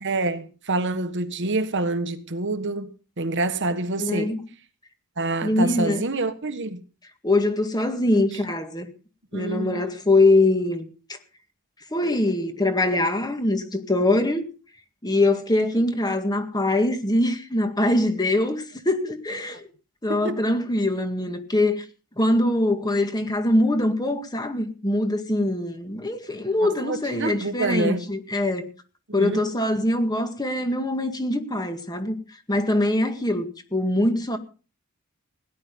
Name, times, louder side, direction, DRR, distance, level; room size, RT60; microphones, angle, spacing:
voice 1, 0.0-4.3 5.2-6.8 9.3-9.9 20.1-20.4 26.6-28.1 29.2-29.4, right 2 dB, 55° right, 1.5 m, -27 dB
voice 2, 4.0-4.4 5.4-6.0 7.2-8.9 9.3-10.9 11.9-14.5 15.0-19.6 20.0-21.8 22.2-28.7 29.1-32.2 32.5-34.4, left 1 dB, 20° left, 1.9 m, -23 dB
17.5 x 11.0 x 5.3 m
head